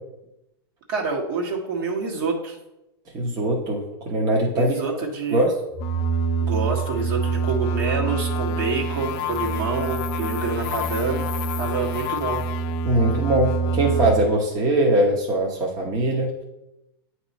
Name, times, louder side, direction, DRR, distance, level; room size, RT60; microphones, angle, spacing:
voice 1, 0.9-2.6 4.6-5.5 6.4-11.3 11.6-12.4, right 4 dB, 55° right, -1 dB, 1.6 m, -27 dB
voice 2, 3.1-4.7 5.3-5.6 12.8-16.3, right 1 dB, 25° right, -2 dB, 1.0 m, -21 dB
sound 1, 5.7-14.1, right 2 dB, 45° left, 0.5 m, -25 dB
8.9 x 3.0 x 4.2 m, 0.91 s
supercardioid pair, 140°, 13 cm